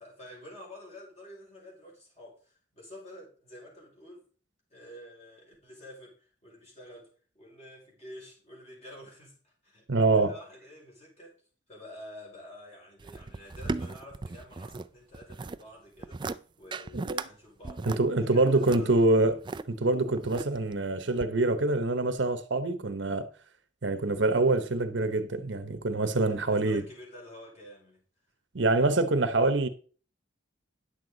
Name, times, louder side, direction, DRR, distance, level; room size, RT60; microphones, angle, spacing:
voice 1, 0.0-4.3 4.7-7.1 7.3-9.8 10.1-11.4 11.7-16.2 16.6-19.1 26.2-28.0, left 1 dB, 35° left, 5.4 m, -49 dB
voice 2, 9.9-10.3 16.9-17.3 17.9-19.4 19.7-23.3 23.8-26.8 28.5-29.7, right 2 dB, 70° right, 0.9 m, -25 dB
sound 1, 13.0-14.9 15.1-15.6 16.0-16.4 16.7-17.3 17.6-19.6 20.2-20.8 21.2-21.3, right 3 dB, 25° right, 0.4 m, -36 dB
10.5 x 7.9 x 3.9 m
head